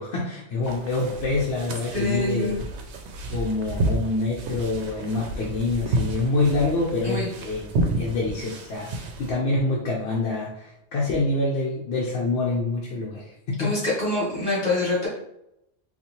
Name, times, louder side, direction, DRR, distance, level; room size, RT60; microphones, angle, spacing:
voice 1, 0.0-2.6 3.3-7.7 8.0-13.8, left 2 dB, 70° left, -3 dB, 0.9 m, -26 dB
sound 1, 0.6-9.3, right 2 dB, 90° right, 0.9 m, -31 dB
voice 2, 1.9-2.6 7.0-7.3 13.6-15.1, left 2 dB, 40° left, -7 dB, 1.7 m, -25 dB
3.9 x 2.4 x 2.9 m, 0.81 s
omnidirectional pair, 1.1 m